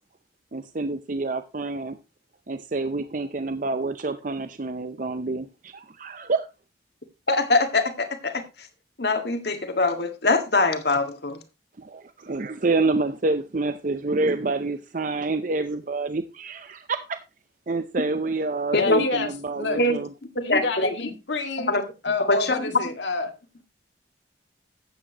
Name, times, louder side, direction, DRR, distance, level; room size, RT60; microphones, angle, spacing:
voice 1, 0.5-2.0 2.5-6.5 11.8-17.2 17.7-20.1, right 3 dB, 45° right, 0.6 m, -28 dB
voice 2, 7.3-8.7 9.0-11.4 18.7-19.0 19.8-20.0 20.3-21.1 21.6-21.8 22.3-22.7, left 2 dB, 65° left, 1.8 m, -23 dB
voice 3, 18.7-19.8 20.4-21.7 22.0-23.3, left 3 dB, 80° left, 2.0 m, -28 dB
14.0 x 8.8 x 2.9 m
head